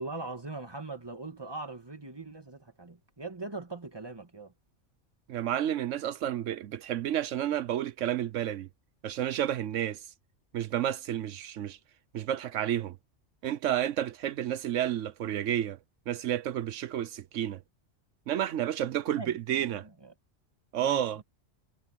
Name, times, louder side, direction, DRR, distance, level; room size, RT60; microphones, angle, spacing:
voice 1, 0.0-4.5 19.1-20.1 20.8-21.2, right 3 dB, 20° right, 2.2 m, -41 dB
voice 2, 5.3-8.7 9.0-10.1 10.5-11.8 12.1-13.0 13.4-15.8 16.1-17.6 18.3-19.9 20.7-21.2, right 11 dB, 85° right, 1.1 m, -31 dB
omnidirectional pair, 1.3 m